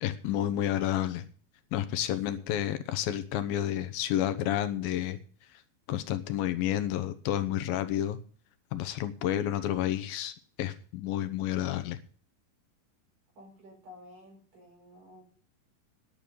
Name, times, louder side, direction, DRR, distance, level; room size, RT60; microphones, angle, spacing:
voice 1, 0.0-1.2 1.7-5.2 5.9-8.2 8.7-12.0, left 12 dB, 80° left, 10 dB, 2.6 m, -30 dB
voice 2, 2.3-2.7 13.4-15.2, left 1 dB, 60° right, 0 dB, 6.6 m, -53 dB
10.5 x 6.9 x 9.2 m, 0.42 s
omnidirectional pair, 4.2 m